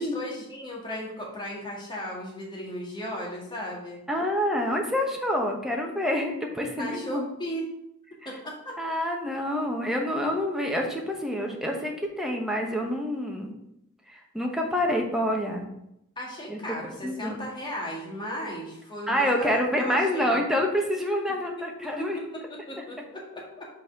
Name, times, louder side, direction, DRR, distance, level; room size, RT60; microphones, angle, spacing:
voice 1, 0.0-4.0 6.8-7.7 8.3-8.8 16.2-20.4 22.0-23.7, equal, 20° left, -2 dB, 1.9 m, -36 dB
voice 2, 4.1-7.2 8.8-13.5 14.1-15.7 16.5-16.6 17.0-17.4 19.1-22.2, equal, ahead, 1 dB, 1.0 m, -27 dB
5.9 x 4.2 x 5.9 m, 0.80 s
head